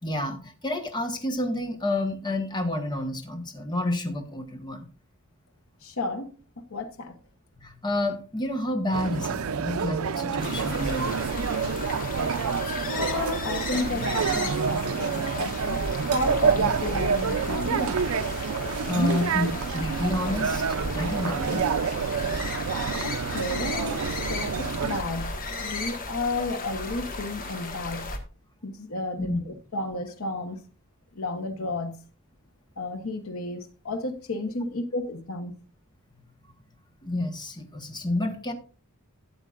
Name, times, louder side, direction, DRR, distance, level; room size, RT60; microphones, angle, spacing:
voice 1, 0.0-4.9 7.6-11.2 18.8-20.6 20.9-21.6 29.2-29.4 37.0-38.5, left 1 dB, 20° left, 1.3 m, -29 dB
voice 2, 5.8-7.2 12.9-15.8 16.1-18.0 23.0-24.0 24.3-28.1 28.6-30.6 31.1-32.0 32.8-35.6, left 2 dB, 80° left, 1.1 m, -32 dB
sound 1, 8.9-25.0, right 6 dB, 80° right, 0.5 m, -28 dB
sound 2, 10.4-28.2, left 2 dB, 40° left, 1.4 m, -35 dB
12.5 x 8.9 x 2.5 m
head